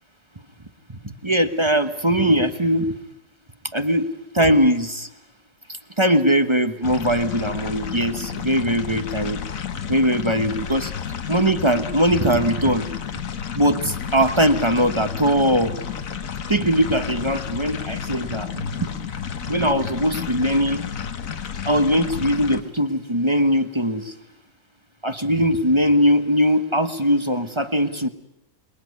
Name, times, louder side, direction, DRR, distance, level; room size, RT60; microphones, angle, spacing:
voice 1, 0.9-2.9 3.7-4.1 4.3-5.1 6.0-9.4 9.9-10.9 11.3-12.9 13.5-15.7 16.5-18.9 19.5-20.8 21.6-24.1 25.0-28.1, equal, 20° right, 9 dB, 1.1 m, -20 dB
sound 1, 6.8-22.6, left 8 dB, 50° left, 1.5 m, -31 dB
28.0 x 21.0 x 9.6 m, 0.85 s
omnidirectional pair, 1.9 m